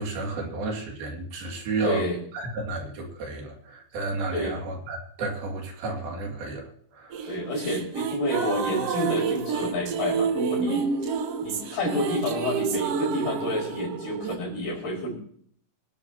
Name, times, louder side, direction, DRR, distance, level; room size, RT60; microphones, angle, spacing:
voice 1, 0.0-2.1 2.3-7.3, right 3 dB, 70° right, 1 dB, 4.3 m, -32 dB
voice 2, 1.8-2.2 4.3-4.6 7.3-11.1 11.4-15.1, left 1 dB, 60° left, -3 dB, 7.1 m, -29 dB
sound 1, 7.1-14.4, right 5 dB, 85° right, 1.3 m, -29 dB
24.0 x 11.5 x 2.9 m, 0.62 s
omnidirectional pair, 4.5 m